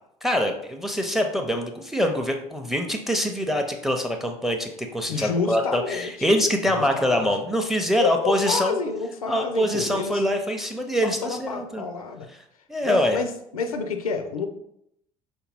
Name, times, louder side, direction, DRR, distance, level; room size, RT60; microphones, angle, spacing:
voice 1, 0.2-8.8 9.3-11.8 12.7-13.2, equal, ahead, 4 dB, 0.5 m, -24 dB
voice 2, 5.1-6.3 6.7-7.3 8.0-10.2 11.0-12.3 12.8-14.5, left 5 dB, 80° left, 5 dB, 0.4 m, -29 dB
4.9 x 2.3 x 3.3 m, 0.76 s
figure-of-eight pair, 60°, 18 cm